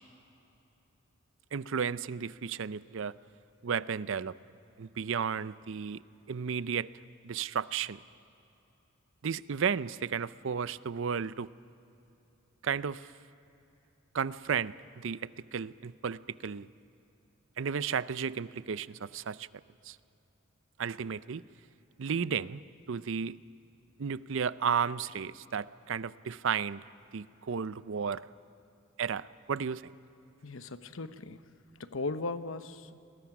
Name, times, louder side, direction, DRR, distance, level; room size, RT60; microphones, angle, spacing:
voice 1, 1.5-3.1 3.6-4.3 4.8-6.0 6.3-6.9 7.2-8.0 9.2-11.5 12.6-13.1 14.1-16.7 17.6-19.5 19.8-20.0 20.8-21.4 22.0-22.6 22.9-23.4 24.0-26.8 27.1-28.3 29.0-29.8, right 6 dB, 65° right, 17 dB, 0.5 m, -33 dB
voice 2, 30.4-31.4 31.8-33.0, left 3 dB, 75° left, 11 dB, 0.9 m, -37 dB
30.0 x 21.5 x 6.0 m, 2.9 s
head